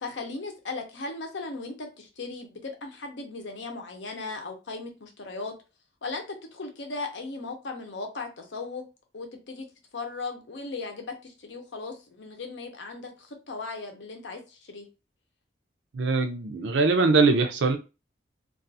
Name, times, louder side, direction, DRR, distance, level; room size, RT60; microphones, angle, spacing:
voice 1, 0.0-5.5 6.0-8.8 9.1-9.7 9.9-14.9, left 3 dB, 75° left, 4 dB, 0.7 m, -37 dB
voice 2, 15.9-17.8, right 3 dB, 75° right, 6 dB, 0.5 m, -22 dB
2.4 x 2.3 x 2.6 m, 0.29 s
head